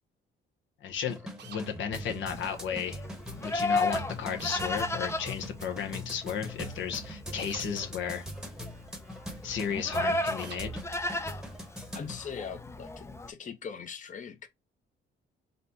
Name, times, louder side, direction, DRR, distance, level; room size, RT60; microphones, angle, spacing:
voice 1, 0.8-1.2 1.5-3.0 3.4-8.3 9.4-10.7, left 7 dB, 70° left, 0.8 m, -34 dB
sound 1, 1.0-12.2, equal, 5° right, 1.0 m, -42 dB
sound 2, 1.4-1.7 4.4-4.7 7.4-7.7 10.4-10.7, right 7 dB, 60° right, 0.9 m, -45 dB
Livestock farm animals working animals, 2.3-13.3, left 2 dB, 15° left, 0.5 m, -35 dB
voice 2, 11.9-14.5, left 6 dB, 40° left, 0.8 m, -41 dB
4.1 x 2.2 x 4.0 m
cardioid pair, 90°, 20 cm